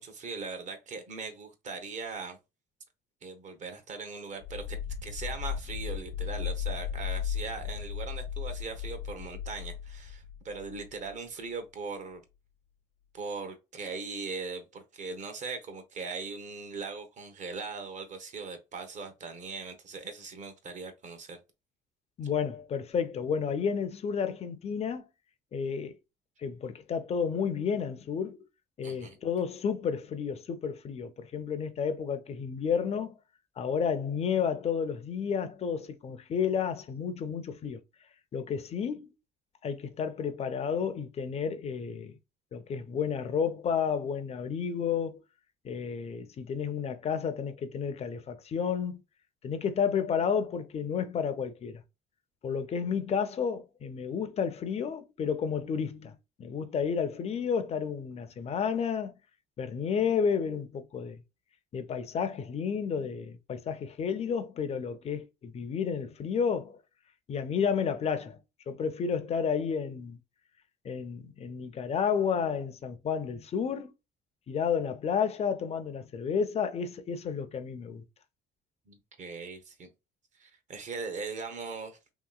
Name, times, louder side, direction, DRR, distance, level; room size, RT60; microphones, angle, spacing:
voice 1, 0.0-2.4 3.2-12.2 13.1-21.4 28.8-29.2 78.9-79.9 80.3-82.0, right 4 dB, 45° right, 0.9 m, -40 dB
sound 1, 4.4-11.1, left 8 dB, 70° left, 0.8 m, -36 dB
voice 2, 22.2-25.0 25.5-26.0 26.4-28.4 28.8-33.2 33.6-37.8 38.3-39.1 39.6-42.2 42.5-45.2 45.6-49.0 49.4-51.8 52.4-59.1 59.6-61.2 61.7-66.8 67.3-68.4 68.7-70.2 70.8-73.9 74.5-78.0, left 6 dB, 40° left, 0.6 m, -31 dB
2.9 x 2.9 x 2.3 m
cardioid pair, 110°, 17 cm